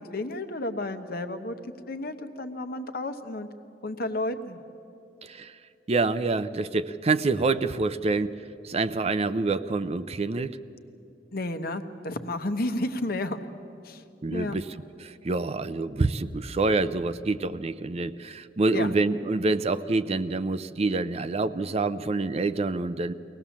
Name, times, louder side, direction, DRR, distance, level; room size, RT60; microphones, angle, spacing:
voice 1, 0.1-3.5 3.8-4.6 11.3-13.5 13.8-14.0 14.3-14.5 18.7-18.9, left 2 dB, 60° left, 8 dB, 1.1 m, -32 dB
voice 2, 5.2-5.5 5.9-8.3 8.6-10.6 14.2-14.7 15.0-23.1, right 3 dB, 35° right, 13 dB, 0.5 m, -27 dB
23.0 x 18.5 x 7.2 m, 2.7 s
head